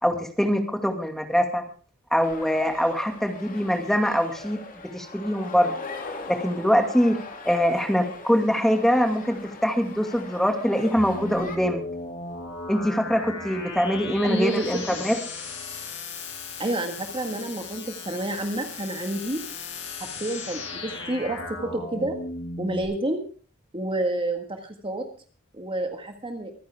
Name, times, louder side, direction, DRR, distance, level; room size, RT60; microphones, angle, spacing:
voice 1, 0.0-1.6 2.1-4.6 4.9-5.7 6.3-7.2 7.4-11.8 12.7-15.1, equal, ahead, 4 dB, 2.2 m, -23 dB
sound 1, 2.2-11.6, left 3 dB, 40° left, 2.6 m, -41 dB
sound 2, 11.0-22.8, left 3 dB, 60° left, 6.5 m, -36 dB
voice 2, 14.2-15.0 16.6-19.4 20.0-22.2 22.6-23.2 23.7-25.1 25.5-26.5, right 1 dB, 25° right, 4 dB, 1.7 m, -29 dB
24.5 x 10.5 x 3.6 m, 0.41 s
head